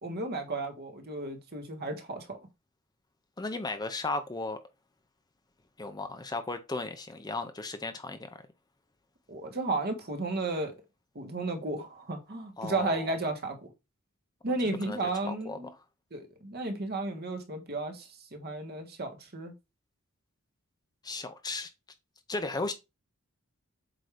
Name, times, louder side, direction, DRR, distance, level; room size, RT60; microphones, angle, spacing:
voice 1, 0.0-2.4 9.3-10.8 11.1-13.7 14.4-15.7 16.1-19.5, right 2 dB, 45° right, 1.4 m, -33 dB
voice 2, 3.4-4.6 5.8-8.3 12.6-13.2 14.6-15.6 21.0-21.7 22.3-22.7, left 3 dB, 20° left, 0.6 m, -35 dB
7.8 x 2.7 x 4.9 m
head